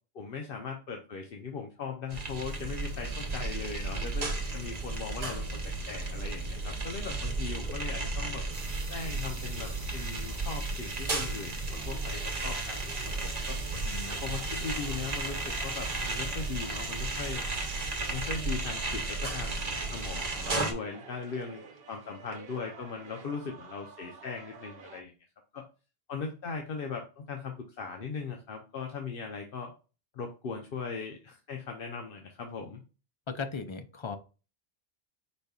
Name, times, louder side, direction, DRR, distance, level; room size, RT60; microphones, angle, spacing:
voice 1, 0.1-5.6 5.9-8.4 8.9-12.8 13.2-13.6 14.1-17.4 18.1-25.1 25.5-25.7 26.1-29.7 30.1-32.8, left 5 dB, 65° left, 3 dB, 0.9 m, -39 dB
sound 1, 2.1-20.7, right 3 dB, 40° right, 0.9 m, -34 dB
sound 2, 8.5-19.8, right 3 dB, 20° right, 1.5 m, -51 dB
sound 3, 11.7-25.0, right 5 dB, 70° right, 0.9 m, -50 dB
voice 2, 13.8-14.3 33.3-34.2, left 5 dB, 40° left, 9 dB, 0.4 m, -37 dB
5.1 x 4.2 x 2.3 m, 0.32 s
omnidirectional pair, 1.0 m